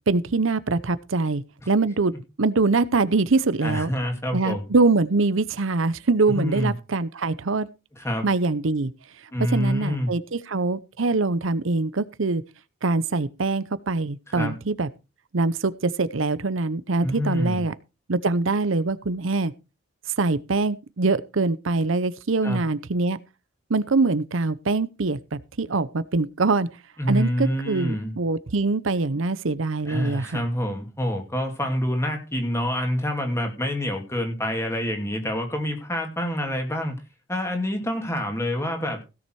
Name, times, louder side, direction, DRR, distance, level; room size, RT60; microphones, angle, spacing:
voice 1, 0.1-2.1 2.4-3.9 4.3-7.7 8.2-8.9 9.4-12.4 12.8-14.9 15.3-17.7 18.1-19.5 20.2-23.2 23.7-26.7 27.1-30.4, right 3 dB, 75° right, 0.7 m, -23 dB
voice 2, 3.6-4.6 6.3-6.7 8.0-8.3 9.3-10.1 14.3-14.6 17.0-17.6 22.4-22.6 27.0-28.2 29.9-37.0 37.3-39.0, left 1 dB, 15° left, 2.7 m, -27 dB
16.5 x 7.1 x 4.7 m
head